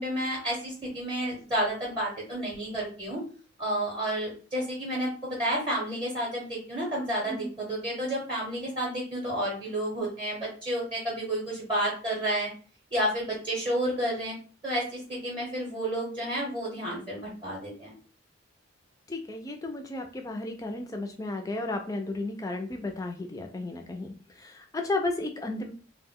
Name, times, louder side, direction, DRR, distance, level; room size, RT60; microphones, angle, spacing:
voice 1, 0.0-3.2 3.6-12.5 12.9-14.3 14.6-17.9, right 1 dB, 25° right, -4 dB, 0.6 m, -31 dB
voice 2, 19.1-25.7, left 2 dB, 15° left, 4 dB, 0.3 m, -33 dB
2.1 x 2.1 x 3.5 m, 0.40 s
head